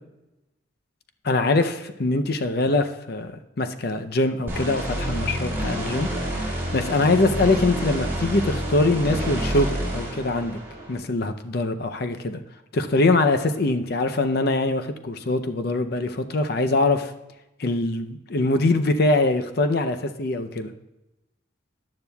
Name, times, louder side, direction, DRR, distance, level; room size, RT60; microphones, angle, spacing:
voice 1, 1.2-10.6 10.9-12.4 12.7-17.1 17.6-20.7, left 2 dB, 55° left, 8 dB, 0.6 m, -23 dB
sound 1, 4.5-10.9, right 1 dB, 10° right, 3.9 m, -28 dB
14.0 x 9.7 x 2.3 m, 0.97 s
head